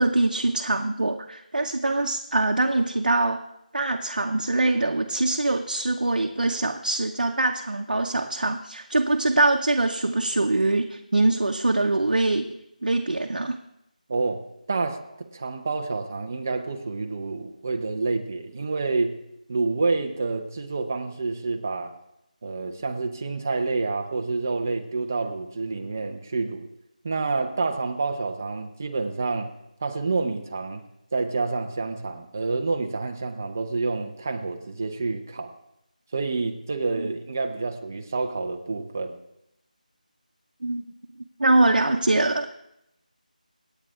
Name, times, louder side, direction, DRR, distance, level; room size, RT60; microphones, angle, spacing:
voice 1, 0.0-3.4 3.7-12.5 12.8-13.6 37.0-37.1 40.6-40.8 41.4-42.5, right 2 dB, 90° right, 2 dB, 0.7 m, -23 dB
voice 2, 14.1-14.4 14.7-19.1 19.5-21.9 22.4-26.7 27.0-29.5 29.8-30.8 31.1-35.5 36.1-39.2, right 3 dB, 20° right, 5 dB, 0.5 m, -28 dB
25.5 x 8.9 x 2.4 m, 0.83 s
figure-of-eight pair, 175°, 5 cm